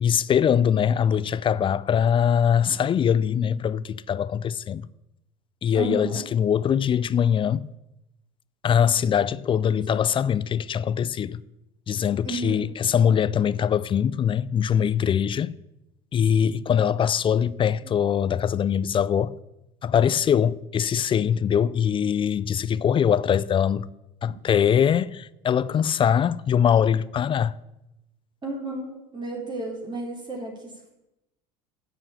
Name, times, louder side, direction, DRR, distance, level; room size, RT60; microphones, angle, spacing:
voice 1, 0.0-4.9 5.6-7.7 8.6-11.4 11.9-15.6 16.1-19.4 19.8-23.9 24.2-27.5, left 8 dB, 35° left, 0.4 m, -22 dB
voice 2, 5.7-6.2 12.2-12.6 28.4-30.9, right 2 dB, 30° right, 3.8 m, -32 dB
9.8 x 7.1 x 8.9 m
supercardioid pair, 100°, 16 cm